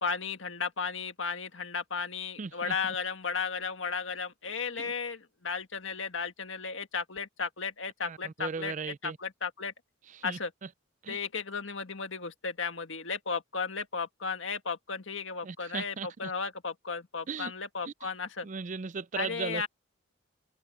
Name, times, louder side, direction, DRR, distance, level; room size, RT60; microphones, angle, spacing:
voice 1, 0.0-9.7 10.2-10.5 11.1-18.5 19.1-19.7, left 5 dB, 75° left, 1.8 m, -35 dB
voice 2, 2.4-2.7 4.8-4.9 8.0-9.2 10.1-10.4 11.0-11.2 15.4-16.3 17.3-17.5 17.9-18.0 18.4-19.7, right 5 dB, 40° right, 0.4 m, -37 dB
head